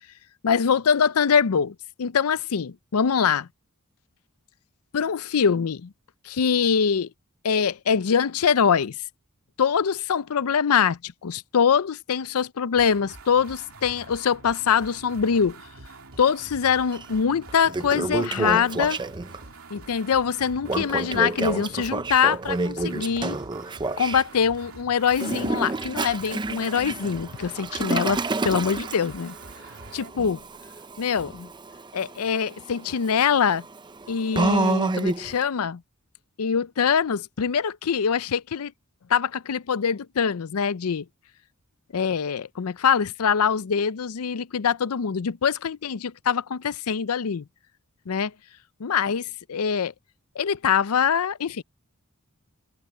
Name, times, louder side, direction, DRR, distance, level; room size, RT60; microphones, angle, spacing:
voice 1, 0.4-3.5 4.9-5.9 6.3-7.1 7.4-9.0 9.6-15.6 16.2-19.0 19.7-23.4 24.0-29.3 29.9-30.4 31.0-31.5 31.9-33.6 34.1-35.8 36.4-38.7 39.1-41.0 41.9-47.4 48.1-48.3 48.8-49.9 50.4-51.6, left 7 dB, 80° left, 0.5 m, -23 dB
sound 1, 12.8-30.2, right 3 dB, 70° right, 3.1 m, -45 dB
Toilet flush, 16.9-17.0 17.5-19.4 20.6-24.2 25.1-35.4, right 3 dB, 20° right, 0.5 m, -29 dB
head